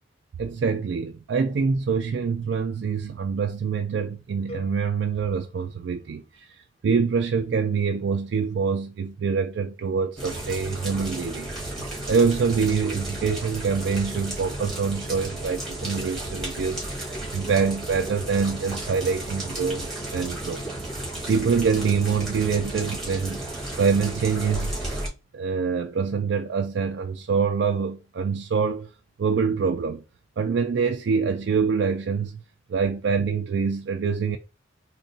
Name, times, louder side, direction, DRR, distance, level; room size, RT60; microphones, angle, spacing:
voice 1, 0.4-20.6 21.3-23.4 23.8-25.0 25.3-28.9 29.2-30.0 30.4-32.4 32.7-34.4, right 5 dB, 65° right, 0.3 m, -25 dB
sound 1, 4.5-6.6, right 1 dB, 30° left, 0.5 m, -46 dB
sound 2, 10.2-25.1, right 1 dB, ahead, 1.6 m, -33 dB
3.7 x 2.2 x 3.9 m
head